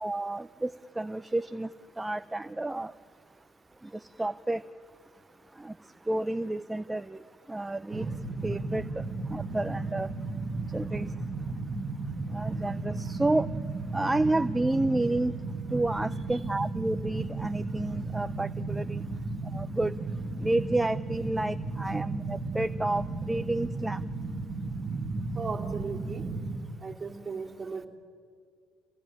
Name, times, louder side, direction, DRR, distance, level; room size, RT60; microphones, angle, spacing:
voice 1, 0.0-1.7 2.0-2.9 4.2-4.6 5.6-5.7 6.1-7.2 7.5-8.1 8.4-8.8 9.3-10.1 10.7-11.1 12.3-13.5 13.9-15.3 15.7-19.0 19.5-19.9 20.4-24.0, right 2 dB, 10° right, 13 dB, 0.5 m, -30 dB
sound 1, 7.9-26.6, right 3 dB, 50° right, 2.0 m, -34 dB
voice 2, 25.3-26.3 26.8-27.9, right 5 dB, 25° right, 1 dB, 3.0 m, -37 dB
26.5 x 18.0 x 8.9 m, 2.1 s
supercardioid pair, 80°, 0 cm